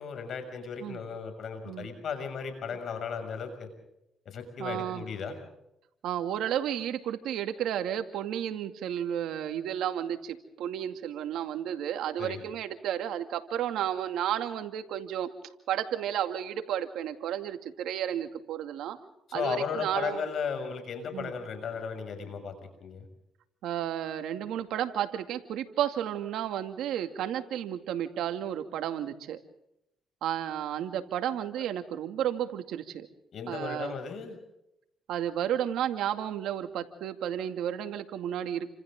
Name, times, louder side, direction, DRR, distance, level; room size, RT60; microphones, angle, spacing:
voice 1, 0.0-3.7 4.2-5.4 12.2-12.4 19.3-22.5 22.8-23.0 33.3-34.4, left 6 dB, 60° left, 7 dB, 6.6 m, -35 dB
voice 2, 4.6-5.0 6.0-15.3 15.7-19.0 19.3-20.2 21.1-21.3 23.6-29.4 30.2-33.1 33.5-34.0 35.1-38.7, right 10 dB, 85° right, 7 dB, 2.3 m, -32 dB
30.0 x 26.5 x 3.8 m, 0.82 s
cardioid pair, 90°, 0 cm